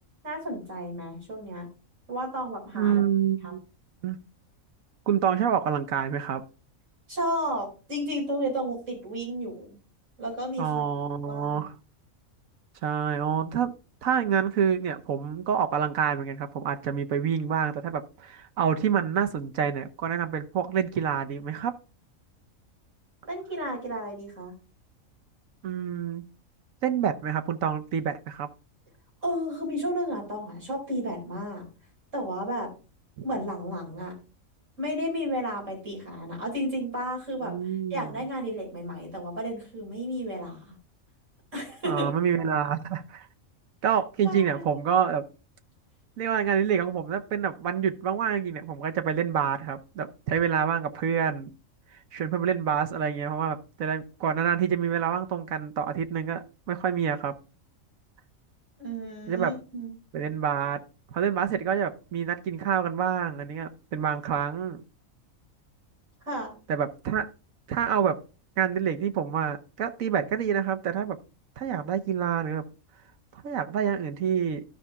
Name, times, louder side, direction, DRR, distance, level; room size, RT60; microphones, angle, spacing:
voice 1, 0.2-1.7 2.1-3.0 3.4-3.6 7.1-9.8 10.2-10.8 11.3-11.6 23.3-24.5 29.2-31.7 32.1-32.7 33.2-34.1 34.8-37.5 37.9-40.8 41.5-42.1 44.2-44.8 58.8-59.9 66.2-66.5, equal, 60° right, -2 dB, 5.2 m, -32 dB
voice 2, 2.7-3.6 4.0-4.2 5.1-6.4 10.6-11.8 12.8-13.7 14.0-21.7 25.6-26.2 26.8-28.5 33.2-33.3 37.4-38.1 41.8-43.3 43.8-45.2 46.2-51.5 52.1-57.4 59.3-59.5 60.1-60.8 61.1-64.8 66.7-67.3 67.7-68.2 68.6-71.2 71.6-72.6 73.3-74.6, right 8 dB, 75° right, 7 dB, 1.3 m, -27 dB
13.0 x 5.5 x 3.5 m, 0.33 s
omnidirectional pair, 1.4 m